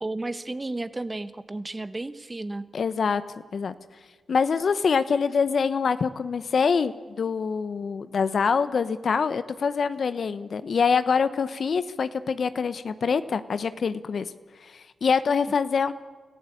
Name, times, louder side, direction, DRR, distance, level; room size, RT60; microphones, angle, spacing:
voice 1, 0.0-2.7, right 2 dB, 25° right, 12 dB, 1.3 m, -33 dB
voice 2, 2.7-3.2 3.5-3.7 4.3-14.3 14.6-15.9, left 5 dB, 65° left, 13 dB, 0.9 m, -25 dB
26.0 x 14.5 x 8.6 m, 1.4 s
supercardioid pair, 40°, 0 cm